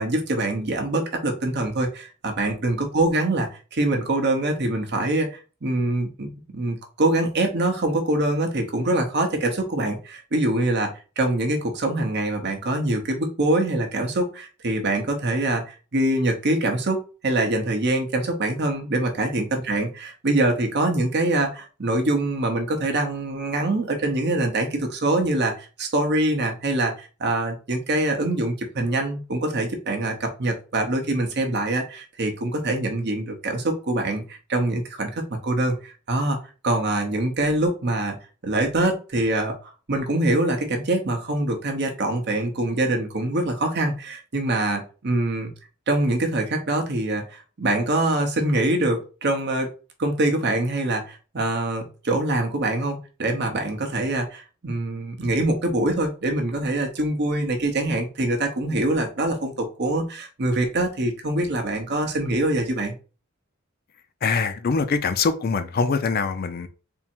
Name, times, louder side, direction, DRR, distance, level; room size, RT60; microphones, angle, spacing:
voice 1, 0.0-10.9 11.2-36.4 36.6-38.2 38.4-45.5 45.9-49.7 50.0-62.9, right 2 dB, 55° right, 0.9 m, -24 dB
voice 2, 64.2-66.7, left 4 dB, 45° left, 0.4 m, -23 dB
3.7 x 2.1 x 4.4 m
head